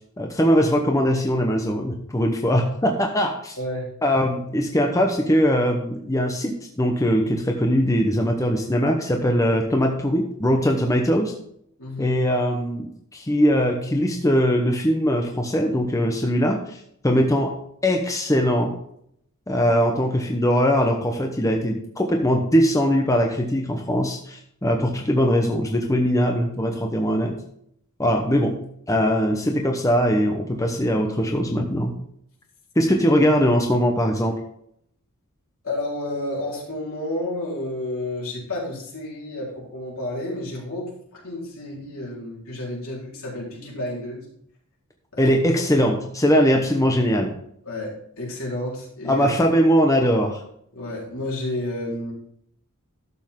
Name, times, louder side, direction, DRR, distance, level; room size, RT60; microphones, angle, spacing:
voice 1, 0.2-3.5 4.0-11.3 12.0-18.8 19.5-27.4 28.0-32.0 32.8-34.4 45.2-47.3 49.0-50.4, equal, 15° left, 2 dB, 0.9 m, -21 dB
voice 2, 3.6-3.9 11.8-12.2 35.6-44.3 45.1-45.4 47.6-49.3 50.7-52.1, left 1 dB, 70° left, -5 dB, 4.1 m, -31 dB
12.0 x 7.1 x 3.7 m, 0.70 s
head